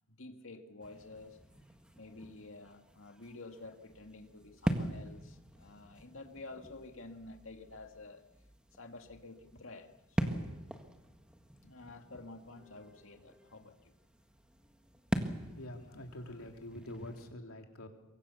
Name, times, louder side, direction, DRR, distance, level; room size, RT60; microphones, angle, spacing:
voice 1, 0.1-1.4 2.0-8.3 8.7-10.6 11.6-13.9 15.9-16.5, left 2 dB, 70° left, 5 dB, 2.3 m, -50 dB
sound 1, 0.8-17.3, equal, 5° right, 1.7 m, -42 dB
voice 2, 15.4-17.9, left 1 dB, 85° left, 3 dB, 3.3 m, -46 dB
24.0 x 23.5 x 7.1 m, 1.0 s
head